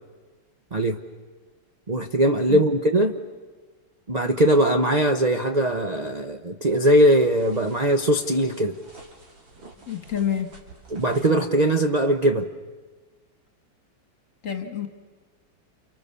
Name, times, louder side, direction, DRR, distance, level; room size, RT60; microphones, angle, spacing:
voice 1, 1.9-3.2 4.1-8.8 10.9-12.5, right 1 dB, 50° right, 5 dB, 0.4 m, -20 dB
sound 1, 7.1-11.4, right 2 dB, 70° right, 4.4 m, -50 dB
voice 2, 9.9-10.5 14.4-14.9, left 9 dB, 40° left, 6 dB, 1.9 m, -27 dB
29.0 x 29.0 x 6.9 m, 1.4 s
omnidirectional pair, 2.2 m